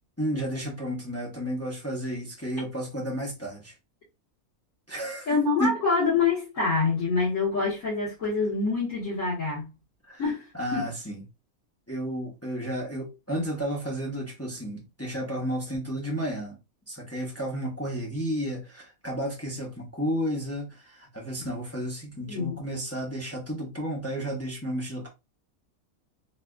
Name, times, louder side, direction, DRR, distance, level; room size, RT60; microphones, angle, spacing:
voice 1, 0.2-3.7 4.9-5.7 10.0-10.2 10.5-11.2 11.9-16.6 16.9-25.1, equal, 15° left, 0.6 m, -32 dB
voice 2, 5.3-9.7 10.2-10.9 22.3-22.6, left 4 dB, 65° left, 1.8 m, -26 dB
3.9 x 2.4 x 2.3 m
omnidirectional pair, 1.5 m